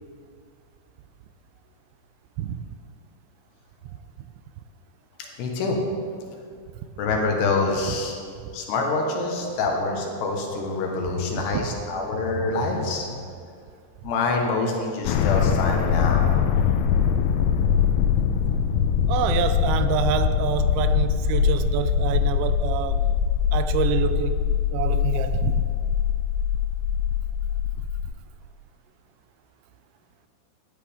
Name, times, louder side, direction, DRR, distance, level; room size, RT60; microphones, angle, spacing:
voice 1, 5.4-5.8 7.0-8.2 8.5-13.1 14.0-16.3, left 3 dB, 70° left, 1 dB, 3.2 m, -26 dB
voice 2, 11.3-11.8 19.1-23.1 23.5-24.4 24.7-25.6, right 9 dB, 85° right, 10 dB, 2.9 m, -27 dB
sound 1, 15.1-28.1, left 8 dB, 90° left, 3.0 m, -22 dB
15.0 x 11.5 x 3.5 m, 2.2 s
omnidirectional pair, 5.2 m